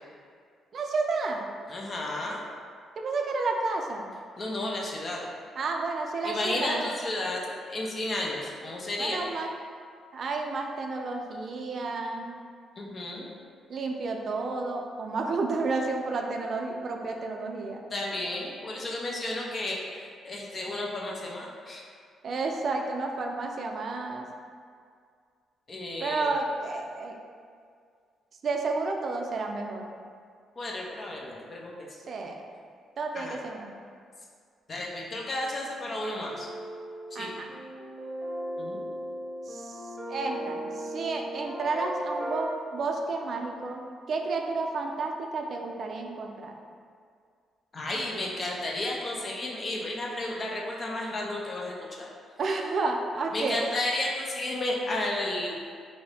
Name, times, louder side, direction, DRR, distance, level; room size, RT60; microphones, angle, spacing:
voice 1, 0.7-1.5 3.0-4.1 5.6-6.9 9.0-9.5 10.1-12.3 13.7-17.8 22.2-24.3 26.0-27.1 28.4-29.9 32.1-32.4 33.0-33.8 37.1-37.5 39.5-39.8 40.1-46.5 52.4-53.6, right 3 dB, 55° right, 2 dB, 0.3 m, -31 dB
voice 2, 1.7-2.4 4.4-5.2 6.2-9.2 12.8-13.3 17.9-21.8 25.7-26.3 30.6-31.7 33.1-33.4 34.7-36.5 37.1-37.3 38.6-38.8 47.7-52.1 53.3-55.6, left 1 dB, 40° left, -2 dB, 0.5 m, -32 dB
sound 1, 36.2-42.5, equal, 20° right, 0.8 m, -37 dB
2.7 x 2.6 x 3.3 m, 2.1 s
cardioid pair, 90°, 0 cm